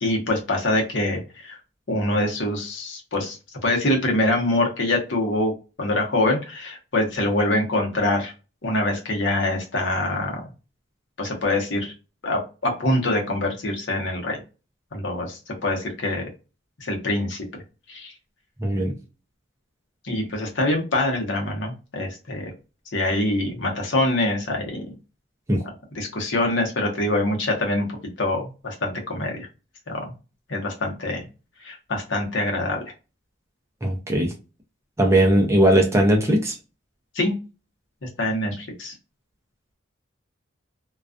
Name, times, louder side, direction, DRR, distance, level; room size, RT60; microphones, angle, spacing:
voice 1, 0.0-1.6 1.9-3.4 3.6-5.5 5.8-8.3 8.6-10.4 11.2-11.9 12.2-14.4 14.9-16.3 16.8-17.4 17.9-18.1 20.0-22.5 22.9-24.9 25.9-27.9 28.2-29.5 29.9-30.1 30.5-31.3 31.6-32.8 37.1-37.3 38.0-38.9, left 1 dB, 65° left, 1 dB, 0.8 m, -24 dB
voice 2, 18.6-18.9 25.5-25.6 33.8-34.3 35.0-36.5, right 1 dB, 15° right, 1 dB, 0.4 m, -19 dB
2.3 x 2.3 x 2.4 m, 0.31 s
head